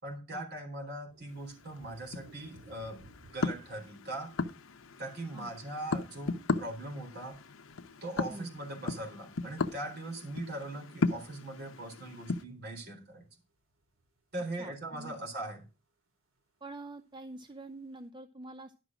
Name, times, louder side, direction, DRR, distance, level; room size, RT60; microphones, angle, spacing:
voice 1, 0.0-3.0 3.3-4.3 5.0-7.4 8.0-13.3 14.3-15.6, right 1 dB, 55° right, 2 dB, 3.9 m, -40 dB
sound 1, 1.1-15.8 16.1-16.2 16.4-18.1, right 2 dB, 75° right, 2.8 m, -62 dB
sound 2, 1.3-12.4, left 3 dB, 80° left, 0.8 m, -37 dB
voice 2, 14.6-15.2 16.6-18.8, right 2 dB, 25° right, 9 dB, 0.6 m, -46 dB
11.5 x 6.1 x 6.1 m, 0.30 s
head